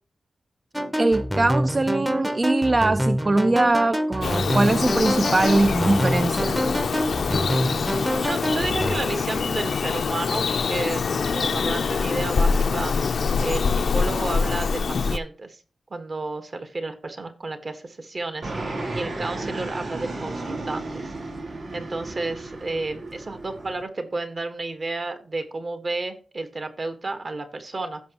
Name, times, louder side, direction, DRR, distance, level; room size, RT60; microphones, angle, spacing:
sound 1, 0.7-9.0, equal, 5° right, 0.7 m, -26 dB
voice 1, 1.0-6.6, right 2 dB, 30° right, 0.3 m, -21 dB
Bird vocalization bird call bird song, 4.2-15.2, left 5 dB, 75° left, 0.6 m, -24 dB
voice 2, 8.2-11.0 11.3-12.9 13.4-15.6 15.9-18.5 18.9-21.1 21.7-28.0, right 2 dB, 45° right, 1.4 m, -31 dB
Fixed-wing aircraft airplane, 18.4-23.8, right 2 dB, 70° right, 3.1 m, -33 dB
15.5 x 6.0 x 3.0 m
wide cardioid pair, 130°, 0 cm